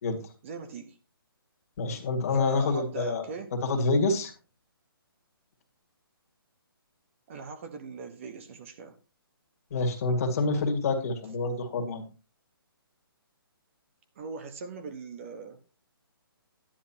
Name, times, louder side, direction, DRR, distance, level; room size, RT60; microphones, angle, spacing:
voice 1, 0.4-1.0 2.3-3.6 7.3-8.9 14.1-15.6, right 4 dB, 35° right, 1.2 m, -40 dB
voice 2, 1.8-3.2 3.6-4.3 9.7-12.0, left 3 dB, 40° left, 2.0 m, -27 dB
12.0 x 10.5 x 2.8 m
hypercardioid pair, 160°, 13 cm